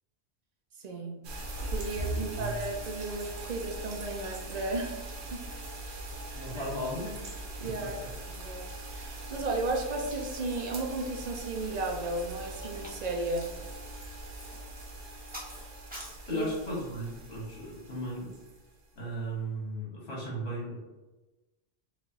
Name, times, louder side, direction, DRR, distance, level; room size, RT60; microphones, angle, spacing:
voice 1, 0.8-1.2 1.7-5.4 5.8-6.1 6.5-6.7 7.6-8.0 8.3-8.7 8.9-13.5 16.3-16.5, right 2 dB, 55° right, 2 dB, 0.5 m, -34 dB
sound 1, 1.2-18.7, right 2 dB, 75° right, 1.0 m, -41 dB
voice 2, 2.1-2.6 6.3-7.2 7.6-8.1 16.3-18.4 19.0-20.8, right 1 dB, 65° left, -4 dB, 1.4 m, -36 dB
sound 2, 12.0-16.2, equal, 10° right, 0.8 m, -48 dB
4.8 x 2.5 x 2.6 m, 1.1 s
omnidirectional pair, 1.2 m